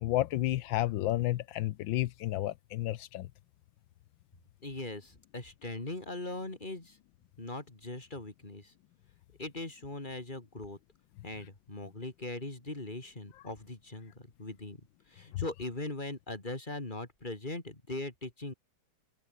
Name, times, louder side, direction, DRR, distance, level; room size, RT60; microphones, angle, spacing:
voice 1, 0.0-3.3, left 14 dB, 80° left, 1.4 m, -31 dB
voice 2, 4.6-7.0 7.4-8.7 9.4-10.8 11.2-14.8 15.1-18.5, left 2 dB, 25° left, 3.6 m, -40 dB
open air
omnidirectional pair, 2.1 m